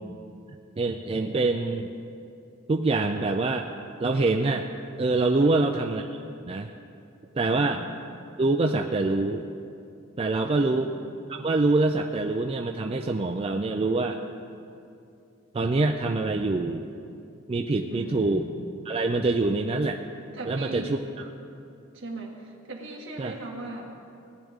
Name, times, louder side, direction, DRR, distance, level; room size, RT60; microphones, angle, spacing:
voice 1, 0.8-1.9 2.7-3.7 4.0-4.7 5.0-6.2 6.5-6.7 7.3-7.8 8.4-9.4 10.2-10.9 11.3-14.2 15.5-16.9 17.5-18.4 18.9-20.0 20.5-21.0 23.2-23.3, right 3 dB, 30° right, 3 dB, 0.4 m, -25 dB
voice 2, 7.4-7.9 10.5-10.8 17.9-18.5 20.3-21.0 21.9-23.9, right 2 dB, 65° right, -1 dB, 1.8 m, -39 dB
18.0 x 10.5 x 3.6 m, 2.6 s
head